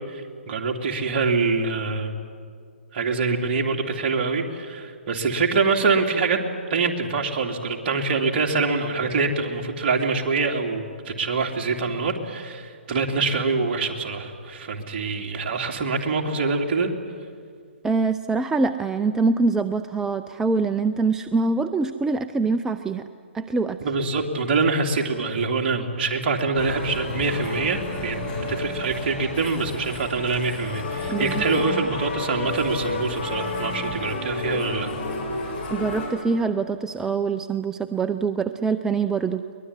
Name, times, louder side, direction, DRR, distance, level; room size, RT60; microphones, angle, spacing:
voice 1, 0.1-2.1 2.9-6.4 6.7-16.9 23.8-34.9, right 4 dB, 45° right, 2 dB, 3.0 m, -25 dB
voice 2, 17.8-23.1 23.3-23.8 31.1-31.8 35.7-39.5, right 4 dB, 10° right, 9 dB, 0.5 m, -24 dB
sound 1, 26.5-36.1, left 2 dB, 45° left, 7.8 m, -31 dB
22.5 x 20.5 x 9.7 m, 2.1 s
hypercardioid pair, 140°, 7 cm